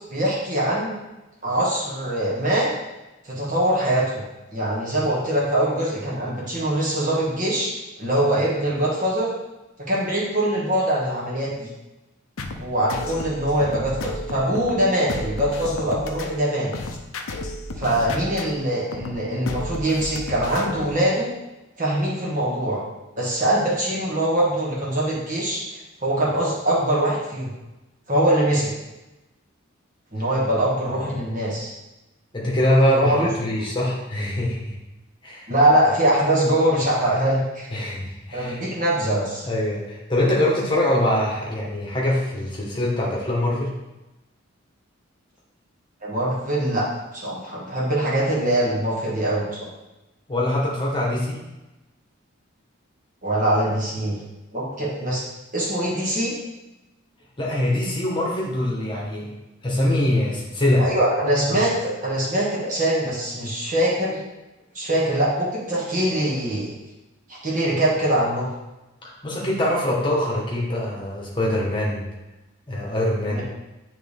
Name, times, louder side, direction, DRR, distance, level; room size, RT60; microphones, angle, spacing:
voice 1, 0.1-1.0 1.4-2.7 3.2-4.1 4.5-7.7 8.0-9.3 9.9-11.7 12.6-16.7 17.8-21.3 21.8-22.8 23.2-27.5 28.1-28.7 30.1-31.7 33.0-33.3 35.5-37.7 38.3-39.4 46.0-46.8 47.1-49.7 53.2-54.2 54.5-55.2 55.5-56.3 60.8-64.2 64.7-66.7 67.4-68.5 73.3-73.4, right 1 dB, 40° right, -6 dB, 1.5 m, -23 dB
sound 1, 12.4-21.0, left 2 dB, 85° left, 0.6 m, -33 dB
voice 2, 32.3-34.7 35.2-35.5 37.7-38.6 39.4-43.7 50.3-51.4 57.4-59.3 59.6-60.8 61.5-61.6 69.0-72.0 72.7-73.4, left 1 dB, 20° left, -4 dB, 1.3 m, -23 dB
9.0 x 3.4 x 3.5 m, 1.0 s
head